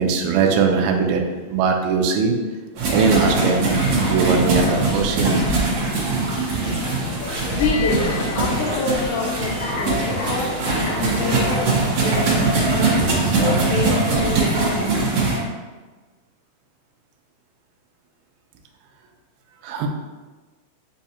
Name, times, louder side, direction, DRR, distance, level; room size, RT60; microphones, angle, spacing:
voice 1, 0.0-2.4 2.9-3.7 4.0-5.4 19.6-19.9, right 5 dB, 80° right, 3 dB, 2.1 m, -20 dB
sound 1, 2.8-15.4, right 3 dB, 60° right, 1.7 m, -21 dB
sound 2, 6.6-11.6, left 2 dB, 65° left, 2.3 m, -30 dB
voice 2, 7.5-8.0 8.4-12.9 13.2-15.0, left 4 dB, 80° left, -1 dB, 2.1 m, -27 dB
5.4 x 2.3 x 4.2 m, 1.3 s
omnidirectional pair, 3.8 m